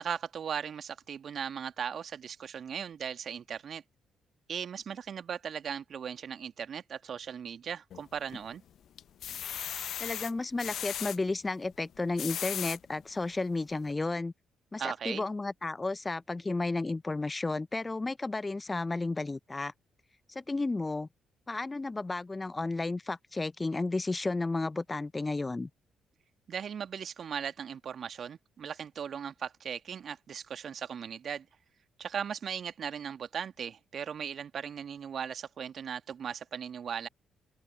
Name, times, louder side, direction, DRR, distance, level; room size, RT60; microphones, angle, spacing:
voice 1, 0.0-3.8 4.5-8.6 14.8-15.2 26.5-31.5 32.0-37.1, right 7 dB, 50° right, 2.1 m, -38 dB
sound 1, 7.9-8.5 9.0-11.2 11.9-12.8 13.4-13.5 13.8-13.9, left 10 dB, 55° left, 0.7 m, -37 dB
voice 2, 10.0-14.3 14.7-19.7 20.3-21.1 21.5-25.7, left 3 dB, 25° left, 1.2 m, -33 dB
figure-of-eight pair, 40°, 0 cm